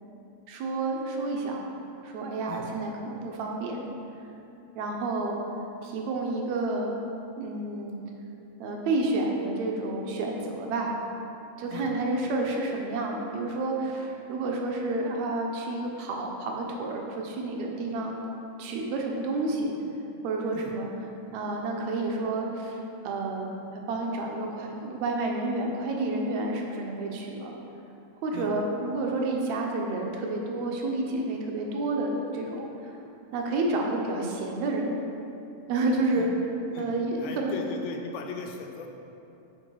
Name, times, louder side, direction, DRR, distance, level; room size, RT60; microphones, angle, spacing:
voice 1, 0.5-1.6 2.0-3.8 4.8-5.4 5.8-6.9 7.4-8.0 8.6-11.0 11.6-18.2 18.6-19.7 20.2-20.9 21.3-22.8 23.0-27.5 28.2-32.9 33.3-35.0 35.7-36.3 36.8-37.5, right 2 dB, 75° right, 0 dB, 1.9 m, -30 dB
voice 2, 37.2-38.9, left 4 dB, 85° left, 3 dB, 2.0 m, -38 dB
6.2 x 4.7 x 4.6 m, 2.8 s
omnidirectional pair, 3.3 m